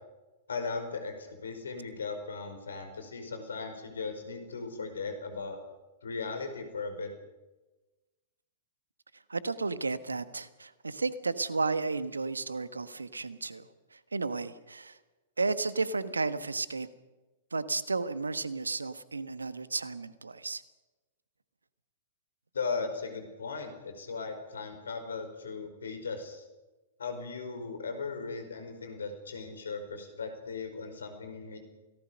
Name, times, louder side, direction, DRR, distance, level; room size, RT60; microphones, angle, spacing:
voice 1, 0.5-5.6 6.0-7.1 22.5-26.4 27.0-31.6, left 4 dB, 75° left, 6 dB, 5.1 m, -37 dB
voice 2, 9.3-15.0 15.4-16.9 17.5-20.6, right 3 dB, 85° right, 13 dB, 1.3 m, -33 dB
28.5 x 18.5 x 5.3 m, 1.1 s
figure-of-eight pair, 105°, 0 cm